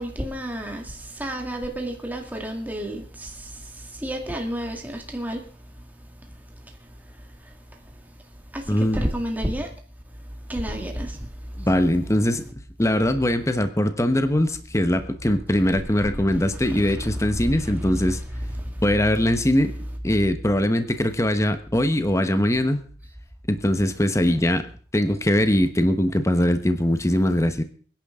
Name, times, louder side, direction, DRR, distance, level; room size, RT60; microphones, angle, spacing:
voice 1, 0.0-5.5 7.4-7.8 8.5-9.7 10.5-11.3 11.6-11.7 15.3-15.4 16.1-18.0 18.6-18.8, equal, 10° right, 2.0 m, -31 dB
voice 2, 8.7-9.0 11.6-12.4 12.8-18.2 18.8-19.7 20.0-22.8 23.5-24.6 24.9-27.6, left 1 dB, 15° left, 1.1 m, -21 dB
23.0 x 10.5 x 3.7 m
head